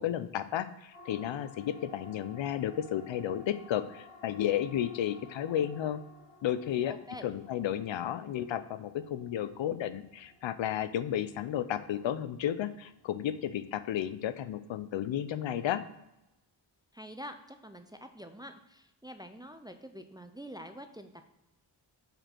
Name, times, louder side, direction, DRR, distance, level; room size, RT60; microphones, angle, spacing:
voice 1, 0.0-6.0 6.4-6.9 7.2-15.8, left 10 dB, 80° left, 13 dB, 0.5 m, -33 dB
Siren, 0.9-15.2, left 2 dB, 20° left, 2.3 m, -56 dB
voice 2, 6.9-7.2 16.9-21.3, equal, 10° right, 7 dB, 0.3 m, -46 dB
5.3 x 4.4 x 4.3 m, 0.93 s
wide cardioid pair, 115°, 44 cm